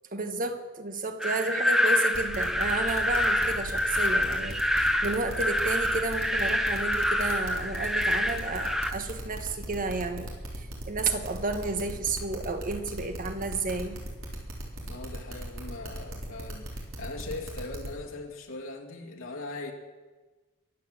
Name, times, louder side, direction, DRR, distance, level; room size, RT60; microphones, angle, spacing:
voice 1, 0.1-14.0, right 3 dB, 45° right, 7 dB, 1.4 m, -32 dB
sound 1, 1.2-8.9, left 1 dB, ahead, 0.8 m, -27 dB
sound 2, 2.1-17.9, right 1 dB, 80° right, 4.1 m, -38 dB
voice 2, 14.8-19.7, left 2 dB, 75° left, 0 dB, 2.6 m, -40 dB
22.5 x 8.4 x 7.6 m, 1.3 s
head